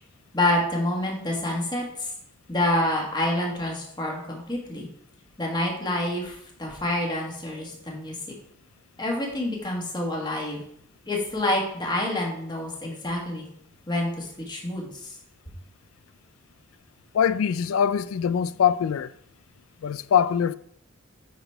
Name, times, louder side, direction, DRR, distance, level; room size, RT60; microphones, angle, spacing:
voice 1, 0.3-2.1 2.5-4.9 5.4-8.1 9.0-10.6 11.1-13.5 13.9-15.1, left 1 dB, 20° left, 1.8 m, -27 dB
voice 2, 17.1-19.1 19.8-20.5, left 8 dB, 85° left, 0.4 m, -23 dB
9.3 x 4.1 x 4.5 m
head